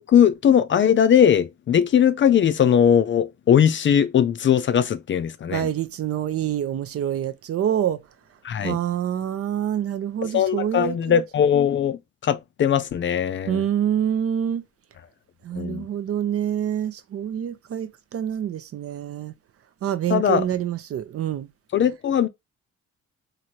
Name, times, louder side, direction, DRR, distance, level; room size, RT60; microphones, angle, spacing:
voice 1, 0.1-5.7 8.4-8.8 10.3-13.6 15.6-15.8 20.1-20.4 21.7-22.3, left 8 dB, 40° left, 0.4 m, -19 dB
voice 2, 5.5-8.0 8.6-11.2 13.5-14.6 15.4-19.3 19.8-21.5, right 10 dB, 50° right, 0.5 m, -26 dB
3.0 x 2.6 x 2.8 m
cardioid pair, 90°, 30 cm